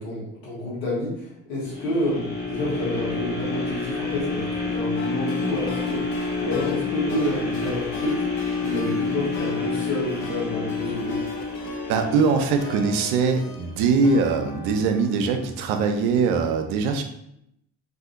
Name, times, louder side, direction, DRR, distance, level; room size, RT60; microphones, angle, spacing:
voice 1, 0.0-6.0 6.4-8.3 8.6-11.2, left 1 dB, 85° left, -5 dB, 1.3 m, -29 dB
sound 1, 1.7-13.8 14.2-14.3, left 4 dB, 25° left, 1.3 m, -29 dB
sound 2, 5.0-16.1, left 4 dB, 65° left, 0.7 m, -39 dB
voice 2, 11.9-17.0, right 5 dB, 80° right, 6 dB, 0.6 m, -22 dB
2.7 x 2.5 x 3.6 m, 0.76 s
hypercardioid pair, 55°, 38 cm